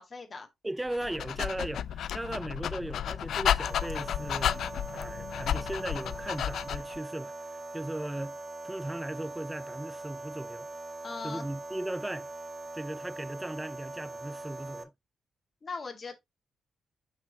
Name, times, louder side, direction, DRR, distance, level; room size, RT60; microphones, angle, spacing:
voice 1, 0.0-0.5 11.0-11.5 15.6-16.2, left 4 dB, 40° left, 1.8 m, -39 dB
voice 2, 0.6-4.6 4.9-8.4 8.6-10.7 11.2-12.3 12.7-14.9, right 1 dB, 10° right, 0.3 m, -37 dB
Dog, 0.9-7.0, left 10 dB, 75° left, 0.3 m, -32 dB
sound 1, 3.7-14.8, right 2 dB, 35° right, 0.9 m, -42 dB
6.0 x 5.5 x 2.9 m
cardioid pair, 75°, 0 cm